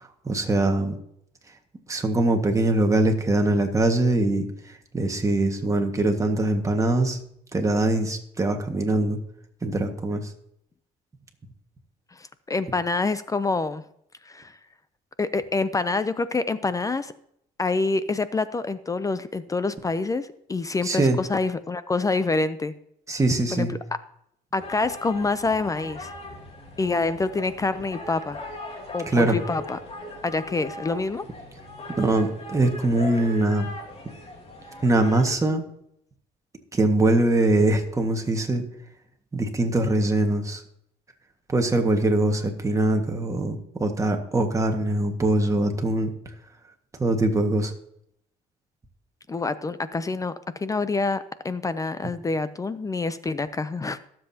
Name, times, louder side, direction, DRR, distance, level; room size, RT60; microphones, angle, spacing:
voice 1, 0.3-1.0 1.9-4.5 4.9-7.2 7.5-9.2 9.6-10.2 20.8-21.2 23.1-23.7 29.1-29.4 32.0-33.7 34.8-35.6 36.7-38.6 39.3-40.6 41.5-46.1 47.0-47.7, right 2 dB, 20° right, 4 dB, 1.7 m, -22 dB
voice 2, 12.2-13.8 14.3-14.5 15.2-17.1 17.6-22.7 23.5-23.7 24.5-26.1 26.8-28.4 28.9-29.8 30.2-31.2 49.3-54.1, left 3 dB, 20° left, 14 dB, 0.5 m, -26 dB
sound 1, 24.6-35.3, left 1 dB, 35° left, 2.5 m, -39 dB
23.0 x 7.7 x 2.8 m, 0.74 s
cardioid pair, 110°, 17 cm